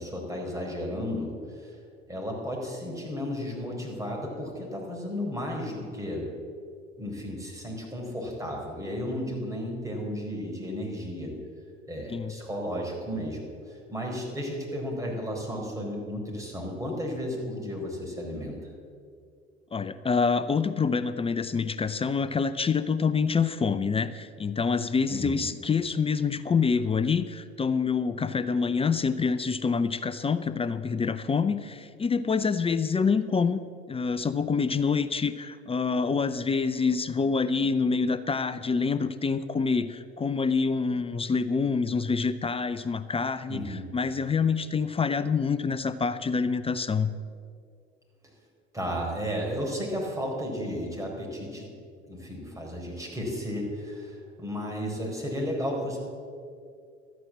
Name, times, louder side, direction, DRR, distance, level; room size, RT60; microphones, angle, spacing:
voice 1, 0.0-1.7 2.1-6.2 7.0-11.3 11.9-18.6 25.1-25.4 43.5-43.9 48.7-51.6 52.1-56.0, equal, 10° right, -1 dB, 4.4 m, -33 dB
voice 2, 19.7-33.6 33.9-47.1, left 5 dB, 15° left, 13 dB, 0.6 m, -26 dB
13.0 x 9.4 x 7.3 m, 2.3 s
figure-of-eight pair, 65°, 33 cm